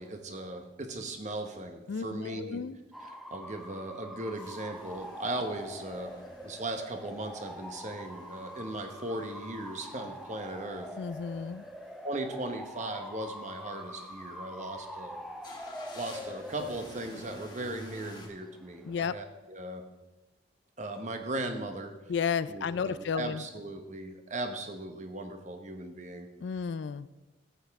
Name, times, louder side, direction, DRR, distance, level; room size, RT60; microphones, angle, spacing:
voice 1, 0.0-2.6 3.0-10.9 12.0-15.2 15.9-19.9 20.8-22.0 22.5-26.3, right 2 dB, 40° right, 6 dB, 1.0 m, -38 dB
voice 2, 1.9-2.8 11.0-11.6 18.8-19.2 22.1-23.4 26.4-27.1, left 6 dB, 70° left, 16 dB, 0.4 m, -32 dB
Bark / Motor vehicle (road) / Siren, 2.9-19.2, equal, ahead, 0.5 m, -45 dB
sound 1, 4.7-18.3, left 1 dB, 20° left, 1.7 m, -53 dB
14.0 x 9.0 x 3.5 m, 1.1 s
head